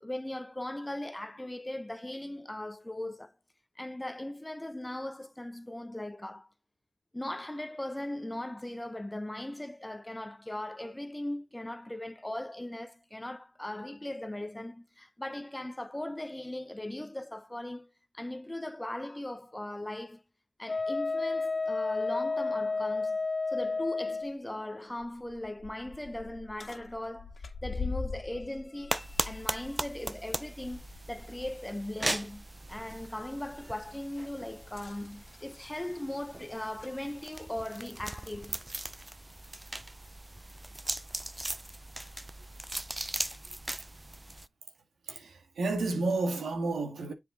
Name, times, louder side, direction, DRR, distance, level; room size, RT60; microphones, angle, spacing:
voice 1, 0.0-3.3 3.8-6.5 7.1-20.2 20.6-23.2 23.5-38.6, left 1 dB, 15° left, 0.8 m, -39 dB
Wind instrument woodwind instrument, 20.7-24.3, left 3 dB, 40° left, 0.5 m, -31 dB
sound 1, 23.6-23.7 24.2-24.3 24.9-31.6 32.0-32.2 34.6-37.0 38.0-38.1 38.9-39.0, left 4 dB, 55° left, 2.2 m, -43 dB
sound 2, 28.9-44.5, right 1 dB, 20° right, 0.5 m, -39 dB
voice 2, 45.1-47.1, right 3 dB, 90° right, 1.7 m, -31 dB
7.6 x 4.6 x 3.9 m
cardioid pair, 65°, 0 cm